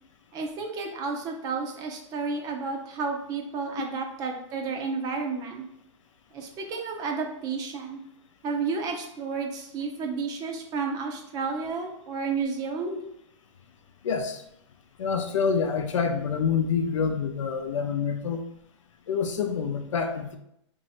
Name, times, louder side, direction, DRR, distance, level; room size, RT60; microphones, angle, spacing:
voice 1, 0.3-5.7 6.3-8.0 8.4-13.0, right 4 dB, 25° right, 3 dB, 0.5 m, -31 dB
voice 2, 14.0-14.4 15.0-18.4 19.1-20.4, left 6 dB, 90° left, 6 dB, 0.6 m, -27 dB
3.0 x 2.6 x 4.1 m, 0.77 s
hypercardioid pair, 145°, 16 cm